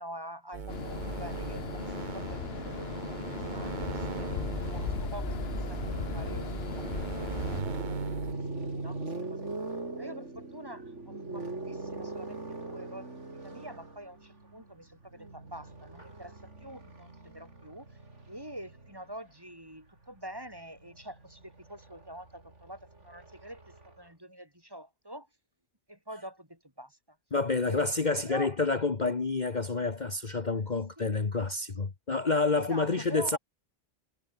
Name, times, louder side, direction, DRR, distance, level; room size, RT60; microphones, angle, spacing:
voice 1, 0.0-4.4 4.7-9.4 10.0-13.1 13.4-18.0 18.3-25.3 25.9-27.2 27.6-27.8 28.1-28.6 31.0-31.1 32.5-33.4, equal, 20° right, 5.5 m, -46 dB
sound 1, 0.5-8.3, right 5 dB, 45° right, 1.2 m, -38 dB
sound 2, 0.7-7.6, left 8 dB, 60° left, 1.1 m, -37 dB
sound 3, 7.1-19.1 20.4-24.0, right 2 dB, 85° right, 4.4 m, -40 dB
voice 2, 27.3-33.4, left 3 dB, 40° left, 1.5 m, -28 dB
omnidirectional pair, 1.2 m